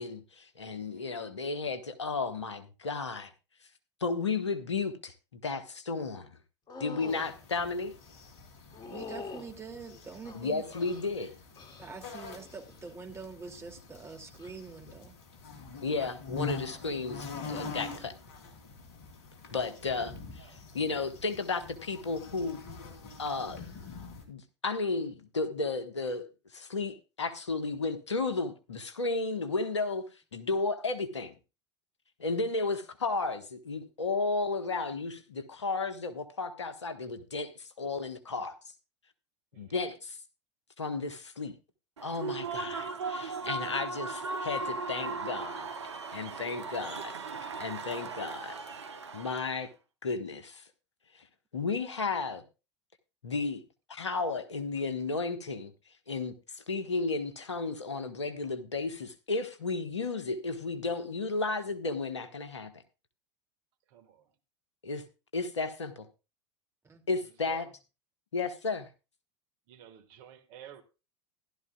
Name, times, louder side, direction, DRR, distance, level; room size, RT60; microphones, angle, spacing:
voice 1, 0.0-3.3 4.0-6.3 6.8-7.9 10.3-11.3 15.8-18.1 19.5-22.6 23.2-23.7 24.3-26.2 26.5-30.0 30.3-31.3 32.2-38.5 39.6-40.2 40.8-41.5 42.0-45.7 46.1-47.1 47.6-48.6 49.1-49.7 50.0-50.6 51.1-51.2 51.5-52.4 53.2-53.6 53.9-55.7 56.1-62.7 64.8-65.0 65.3-66.1 67.1-67.6 68.3-68.9, left 3 dB, 80° left, 1.4 m, -33 dB
voice 2, 0.9-1.4 10.6-10.8 11.1-11.3 19.4-19.8 20.4-20.6 32.4-32.5 39.5-39.8 63.9-64.3 67.2-67.7 69.7-70.8, right 10 dB, 50° right, 1.7 m, -54 dB
sound 1, 6.7-7.3 8.7-9.5 10.2-11.1 11.6-12.0 12.3-12.8 14.3-14.5, left 4 dB, 30° left, 2.3 m, -44 dB
sound 2, 7.1-24.2, left 5 dB, 50° left, 3.0 m, -45 dB
voice 3, 8.9-10.6 11.8-15.1 16.0-16.1 66.8-67.0, right 5 dB, 20° right, 2.5 m, -45 dB
Human voice / Cheering / Applause, 42.0-49.6, right 4 dB, 75° right, 1.1 m, -37 dB
15.5 x 12.0 x 2.3 m
figure-of-eight pair, 80°, 15 cm